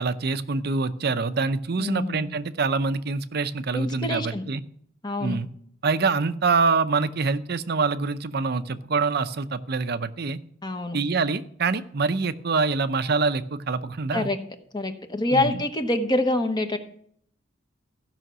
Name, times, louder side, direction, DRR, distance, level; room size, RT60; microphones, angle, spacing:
voice 1, 0.0-4.6 5.2-5.5 5.8-10.4 10.9-14.3 15.3-15.6, right 4 dB, 55° right, 12 dB, 0.6 m, -25 dB
voice 2, 1.8-2.2 3.7-4.5 5.0-5.4 10.6-11.0 14.1-14.4 14.7-16.8, left 2 dB, 20° left, 6 dB, 1.1 m, -26 dB
15.5 x 5.7 x 6.1 m, 0.64 s
head